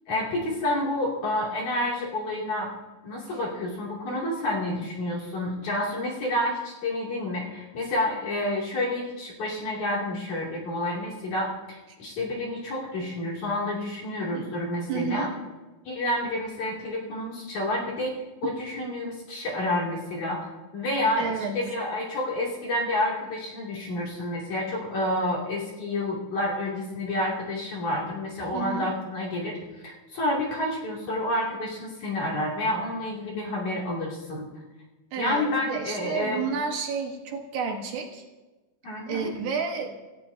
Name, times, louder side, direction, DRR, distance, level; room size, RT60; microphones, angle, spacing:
voice 1, 0.1-2.7 3.0-15.3 15.9-29.5 29.8-34.5 35.2-36.5 38.8-39.3, left 1 dB, 45° left, -4 dB, 3.8 m, -29 dB
voice 2, 14.9-15.3 18.4-18.5 21.2-21.6 28.5-28.9 35.1-38.2 39.1-39.9, right 5 dB, 70° right, 2 dB, 3.4 m, -31 dB
27.0 x 15.0 x 2.9 m, 1.2 s
omnidirectional pair, 5.2 m